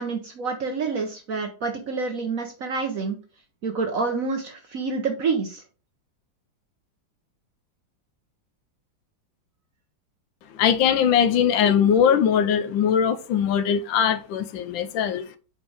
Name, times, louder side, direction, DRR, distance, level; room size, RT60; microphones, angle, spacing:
voice 1, 0.0-3.2 3.6-5.6, right 4 dB, 55° right, 1.1 m, -28 dB
voice 2, 10.5-15.4, left 8 dB, 85° left, 1.4 m, -21 dB
5.3 x 5.2 x 4.6 m
omnidirectional pair, 2.0 m